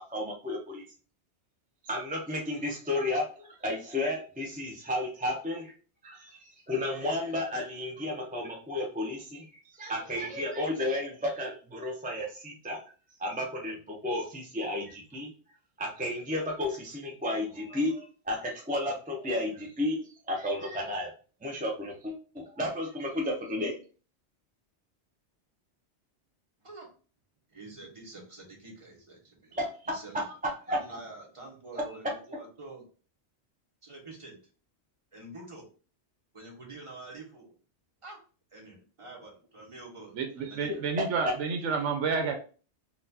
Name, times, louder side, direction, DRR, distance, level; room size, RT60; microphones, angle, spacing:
voice 1, 0.1-0.8 1.9-5.7 6.0-12.8 13.2-15.3 15.8-20.0 20.3-21.1 21.4-22.1 22.5-23.7 29.5-29.9 30.7-30.8, left 1 dB, 10° right, -1 dB, 0.5 m, -32 dB
voice 2, 27.5-30.3 30.7-32.9 33.8-34.4 35.1-35.7 36.3-37.5 38.0-38.2 38.5-40.8, right 2 dB, 30° right, -2 dB, 1.1 m, -47 dB
voice 3, 40.1-42.3, right 5 dB, 85° right, 5 dB, 0.9 m, -30 dB
4.1 x 2.4 x 2.7 m, 0.37 s
omnidirectional pair, 1.2 m